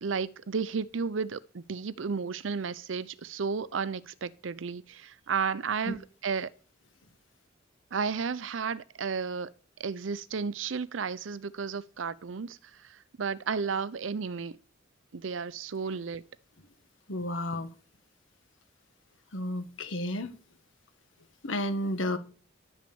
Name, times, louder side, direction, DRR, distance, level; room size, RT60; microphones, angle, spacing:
voice 1, 0.0-6.5 7.9-9.5 9.8-14.6 15.1-16.2, right 5 dB, 75° right, 0.6 m, -33 dB
voice 2, 17.1-17.7 19.3-20.3 21.4-22.2, left 1 dB, 75° left, 1.5 m, -32 dB
11.0 x 6.1 x 7.0 m
head